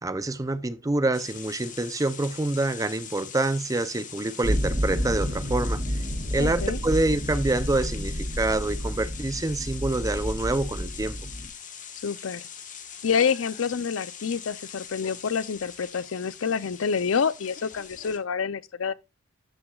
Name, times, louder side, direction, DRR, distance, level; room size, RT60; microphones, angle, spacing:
voice 1, 0.0-5.8 6.3-11.2, right 2 dB, 15° right, 0.5 m, -26 dB
sound 1, 1.1-18.2, left 7 dB, 40° left, 1.3 m, -42 dB
sound 2, 4.4-11.5, equal, 50° right, 3.0 m, -30 dB
voice 2, 6.4-6.8 12.0-12.5 13.0-18.9, left 6 dB, 85° left, 0.5 m, -27 dB
12.5 x 6.0 x 2.3 m
head